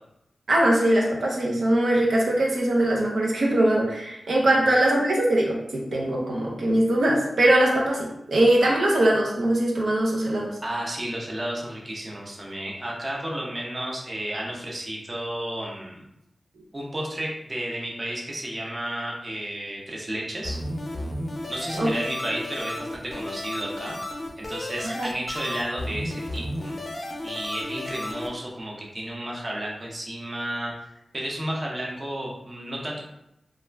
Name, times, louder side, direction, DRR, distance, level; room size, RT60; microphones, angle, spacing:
voice 1, 0.5-10.5 21.8-21.9 24.8-25.1, right 1 dB, 90° right, -3 dB, 0.5 m, -21 dB
voice 2, 10.6-16.0 16.7-20.6 21.5-24.0 24.4-26.7 27.2-33.0, right 1 dB, 35° right, -3 dB, 0.7 m, -32 dB
sound 1, 20.4-28.3, left 1 dB, 45° left, 0.5 m, -34 dB
2.4 x 2.0 x 3.3 m, 0.84 s
wide cardioid pair, 75°, 0 cm